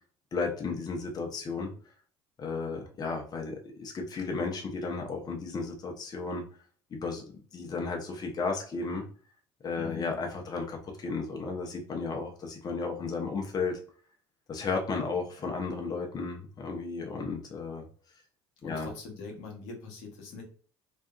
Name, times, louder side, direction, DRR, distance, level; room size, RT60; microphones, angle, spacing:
voice 1, 0.3-1.7 2.4-6.4 6.9-9.0 9.6-13.8 14.5-17.8 18.6-18.9, left 4 dB, 35° left, 1 dB, 0.7 m, -34 dB
voice 2, 9.7-10.2 18.6-20.4, left 4 dB, 75° left, 0 dB, 0.9 m, -42 dB
2.6 x 2.3 x 2.3 m, 0.43 s
hypercardioid pair, 75°, 11 cm